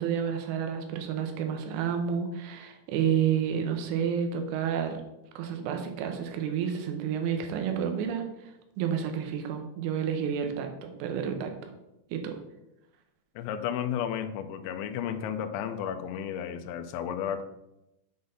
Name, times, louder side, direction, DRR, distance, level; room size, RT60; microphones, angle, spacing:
voice 1, 0.0-5.0 5.4-11.7 12.1-12.3, right 8 dB, 80° right, 5 dB, 3.3 m, -30 dB
voice 2, 13.4-17.4, left 9 dB, 80° left, 8 dB, 2.7 m, -33 dB
8.8 x 4.0 x 5.4 m, 0.91 s
omnidirectional pair, 5.8 m